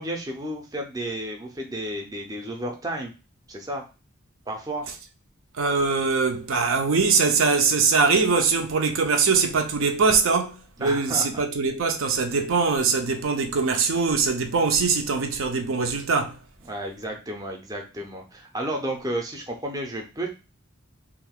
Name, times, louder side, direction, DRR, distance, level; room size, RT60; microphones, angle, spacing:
voice 1, 0.0-3.1 3.5-3.8 4.5-4.9 10.8-11.3 16.6-20.3, right 1 dB, 15° right, 0.5 m, -32 dB
voice 2, 5.6-16.4, right 4 dB, 75° right, 0.5 m, -22 dB
2.6 x 2.4 x 3.5 m
head